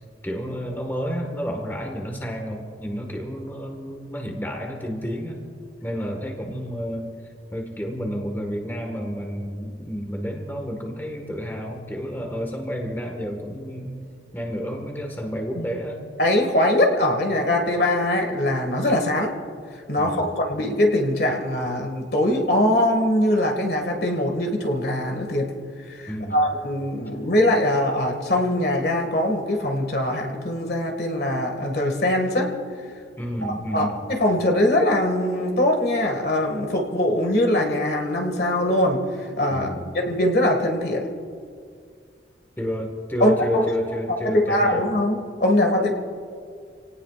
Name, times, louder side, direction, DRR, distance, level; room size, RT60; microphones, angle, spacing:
voice 1, 0.2-5.4 5.8-7.1 7.5-14.0 14.3-16.0 20.0-20.3 26.1-26.4 33.2-34.0 39.5-39.9 42.6-44.8, equal, 10° left, 2 dB, 1.6 m, -30 dB
voice 2, 16.2-19.3 19.9-25.5 25.9-32.5 33.4-41.1 43.2-43.7 44.2-45.9, left 1 dB, 60° left, 2 dB, 2.0 m, -22 dB
28.5 x 18.0 x 2.5 m, 2.2 s
head